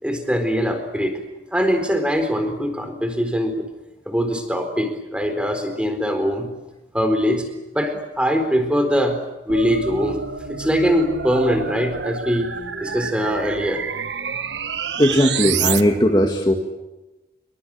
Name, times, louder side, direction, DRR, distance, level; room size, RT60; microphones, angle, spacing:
voice 1, 0.0-1.2 1.5-3.7 4.1-6.5 6.9-7.4 7.7-9.2 9.5-10.2 10.5-12.5 12.8-13.8, equal, 5° right, 7 dB, 4.1 m, -22 dB
sound 1, 9.5-15.8, right 7 dB, 90° right, 1.4 m, -28 dB
voice 2, 15.0-16.5, equal, 25° left, 2 dB, 2.1 m, -17 dB
27.5 x 23.5 x 8.8 m, 1.0 s
head